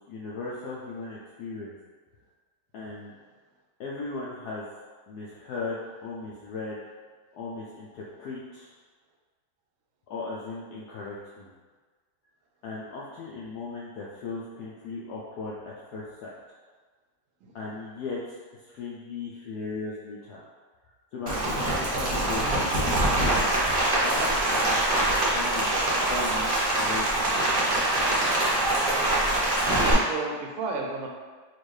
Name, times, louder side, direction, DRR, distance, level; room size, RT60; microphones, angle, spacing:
voice 1, 0.1-1.8 2.7-3.1 3.8-4.7 5.1-6.8 7.3-8.7 10.1-11.5 12.6-16.3 17.5-18.4 18.6-20.4 21.1-22.9 23.9-25.7 26.1-27.3, left 3 dB, 75° left, -6 dB, 0.9 m, -37 dB
Rain, 21.3-29.9, right 1 dB, 50° right, 0.6 m, -24 dB
voice 2, 29.7-31.1, right 3 dB, 85° right, 0 dB, 1.4 m, -33 dB
4.4 x 2.5 x 3.1 m, 1.4 s
omnidirectional pair, 2.2 m